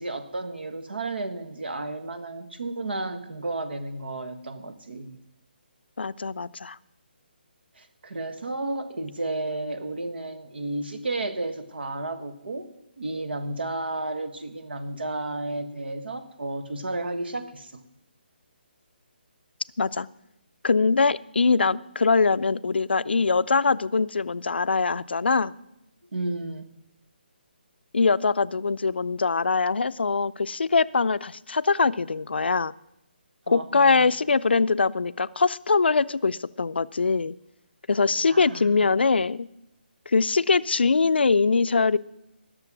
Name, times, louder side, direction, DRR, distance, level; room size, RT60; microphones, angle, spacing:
voice 1, 0.0-5.2 7.8-12.7 13.0-17.8 26.1-26.7 33.5-34.1 38.2-38.8, right 2 dB, 70° right, 9 dB, 1.6 m, -32 dB
voice 2, 6.0-6.8 19.8-20.1 20.6-25.5 27.9-32.7 33.5-37.3 37.9-39.5 40.1-42.0, left 4 dB, 75° left, 17 dB, 0.4 m, -22 dB
19.0 x 6.9 x 6.0 m, 0.88 s
figure-of-eight pair, 150°, 6 cm